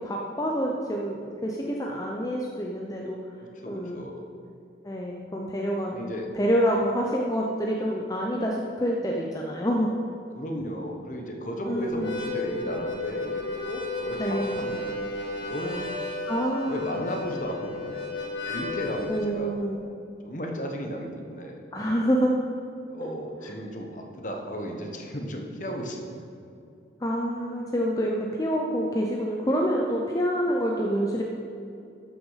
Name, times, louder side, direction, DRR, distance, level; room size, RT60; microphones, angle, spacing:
voice 1, 0.0-3.2 3.7-4.0 4.8-5.9 6.3-9.9 11.7-12.1 14.2-14.6 16.3-16.8 19.1-19.8 21.7-22.3 23.0-23.1 23.4-23.5 27.0-31.2, equal, 20° left, -1 dB, 0.6 m, -27 dB
voice 2, 3.6-4.3 5.9-6.3 10.3-14.9 15.4-15.9 16.7-18.0 18.4-19.5 20.2-21.6 22.9-26.1, equal, 45° left, 2 dB, 1.2 m, -34 dB
Harmonica, 11.9-19.3, left 2 dB, 80° left, 2.0 m, -33 dB
12.5 x 6.2 x 5.7 m, 2.5 s
head